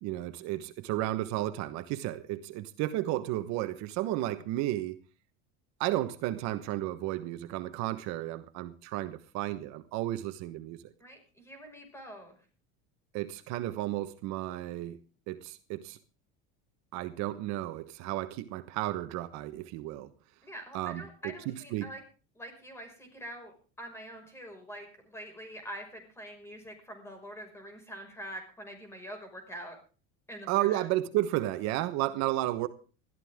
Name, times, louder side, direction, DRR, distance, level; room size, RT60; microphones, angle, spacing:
voice 1, 0.0-5.0 5.8-10.8 13.1-15.0 15.3-16.0 16.9-20.1 20.7-21.9 30.5-32.7, right 15 dB, 60° right, 1.3 m, -33 dB
voice 2, 11.0-12.4 20.4-22.0 22.3-29.8 30.3-30.9, right 1 dB, 10° left, 5.6 m, -45 dB
21.0 x 14.0 x 3.6 m
cardioid pair, 150°, 31 cm